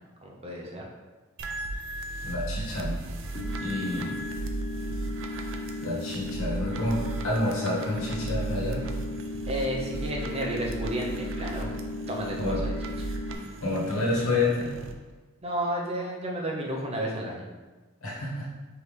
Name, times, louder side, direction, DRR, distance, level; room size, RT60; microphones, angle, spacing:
voice 1, 0.2-0.8 3.7-4.1 9.5-11.7 12.1-12.7 13.0-13.1 15.4-17.4, right 1 dB, 30° right, -2 dB, 0.8 m, -32 dB
sound 1, 1.4-14.9, right 2 dB, 60° right, 0.5 m, -36 dB
voice 2, 2.2-3.0 3.6-4.2 5.8-8.8 12.4-12.6 13.6-14.7 18.0-18.5, left 2 dB, 70° left, -5 dB, 1.4 m, -29 dB
sound 2, 3.3-13.3, left 2 dB, 40° left, 0.4 m, -36 dB
4.6 x 3.4 x 3.3 m, 1.3 s
head